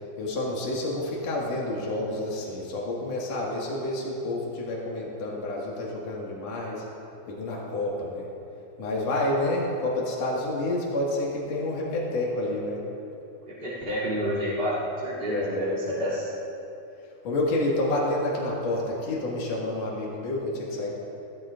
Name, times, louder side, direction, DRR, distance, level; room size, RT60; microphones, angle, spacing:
voice 1, 0.2-6.8 7.3-8.3 8.8-12.8 15.3-15.8 17.2-20.9, left 1 dB, 65° left, -4 dB, 2.9 m, -29 dB
voice 2, 13.5-16.3, equal, 20° right, -11 dB, 2.7 m, -29 dB
16.0 x 13.5 x 2.5 m, 2.9 s
omnidirectional pair, 3.3 m